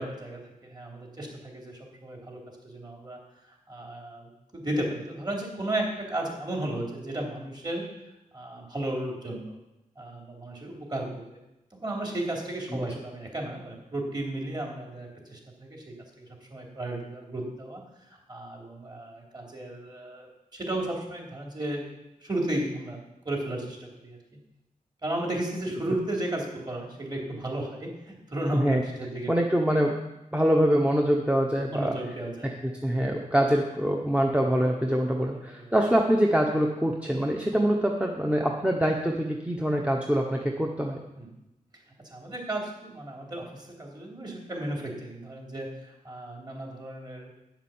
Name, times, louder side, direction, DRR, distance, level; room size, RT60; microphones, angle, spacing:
voice 1, 0.0-3.2 3.7-7.9 8.3-9.6 10.0-11.4 11.8-17.8 18.3-21.9 22.2-23.0 23.3-24.2 25.0-29.3 31.7-32.7 35.2-35.7 41.2-41.3 42.1-47.3, right 1 dB, 30° right, -1 dB, 3.5 m, -34 dB
voice 2, 29.3-29.9 30.3-31.9 32.8-41.0, equal, 10° right, 0 dB, 1.1 m, -24 dB
9.4 x 7.4 x 7.3 m, 0.92 s
wide cardioid pair, 80°, 14 cm